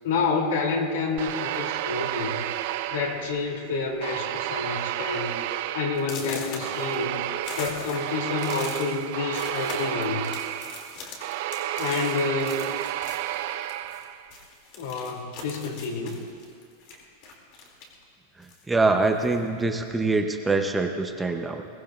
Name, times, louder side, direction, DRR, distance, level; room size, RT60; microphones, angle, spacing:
voice 1, 0.0-2.4 2.9-5.4 5.7-7.3 7.6-10.3 11.8-12.8 14.8-16.2, left 4 dB, 80° left, 1 dB, 2.6 m, -29 dB
sound 1, 1.2-3.6 4.0-14.3, right 13 dB, 50° right, 0.5 m, -31 dB
sound 2, 1.5-1.8 2.6-2.7 3.1-3.4 3.7-4.1 4.5-4.6 5.1-5.2 6.0-14.0 14.3-18.0 18.4-19.4, left 3 dB, 45° left, 2.3 m, -41 dB
voice 2, 18.7-21.7, right 3 dB, 5° right, 4 dB, 0.6 m, -24 dB
21.5 x 18.5 x 2.4 m, 2.4 s
supercardioid pair, 170°, 0 cm